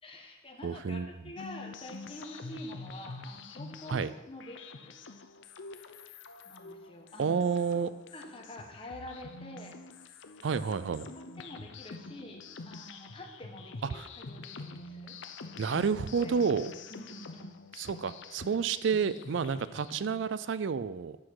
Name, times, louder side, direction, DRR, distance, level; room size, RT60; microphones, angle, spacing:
voice 1, 0.0-5.0 6.4-7.4 8.1-9.8 10.5-10.6 11.4-15.2 15.7-15.9 16.2-16.3 16.9-17.6, left 1 dB, 25° left, 2 dB, 1.5 m, -47 dB
voice 2, 0.6-1.1 3.9-4.1 7.2-7.9 10.4-11.1 13.9-14.1 15.6-16.7 17.8-21.2, right 6 dB, 65° right, 15 dB, 0.4 m, -30 dB
sound 1, 1.4-20.2, left 3 dB, 65° left, 0.7 m, -46 dB
12.0 x 8.6 x 4.8 m, 1.1 s
head